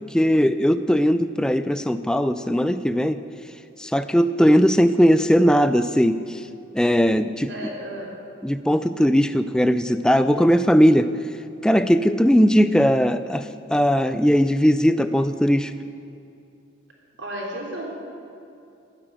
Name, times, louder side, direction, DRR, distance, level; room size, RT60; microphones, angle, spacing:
voice 1, 0.0-3.2 3.8-6.4 6.7-7.5 8.4-11.1 11.6-15.7, equal, 5° left, 11 dB, 0.3 m, -19 dB
voice 2, 7.5-8.1 17.2-17.9, right 1 dB, 65° right, -1 dB, 3.3 m, -33 dB
12.5 x 8.9 x 9.1 m, 2.6 s
head